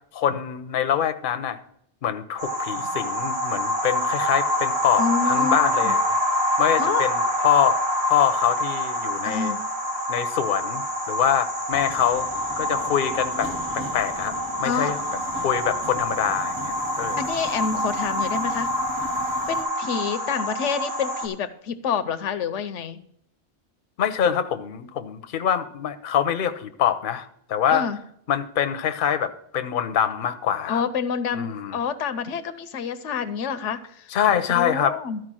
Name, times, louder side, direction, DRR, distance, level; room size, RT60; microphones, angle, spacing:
voice 1, 0.1-1.6 2.0-6.0 6.6-9.5 10.1-12.3 12.6-14.3 14.6-15.0 15.4-17.2 24.0-27.9 28.3-30.8 31.3-31.8 34.1-35.0, left 9 dB, 50° left, 9 dB, 0.8 m, -24 dB
sound 1, 2.4-21.3, left 1 dB, 60° right, 1.9 m, -26 dB
voice 2, 5.0-5.9 6.8-7.1 9.2-9.6 14.6-14.9 17.2-18.7 19.5-23.0 27.7-28.0 30.7-34.1 34.5-35.2, left 6 dB, 80° left, 12 dB, 1.0 m, -28 dB
Subway metro underground, 11.7-19.6, right 1 dB, 15° right, 0.5 m, -40 dB
13.0 x 4.7 x 6.1 m, 0.71 s
omnidirectional pair, 1.2 m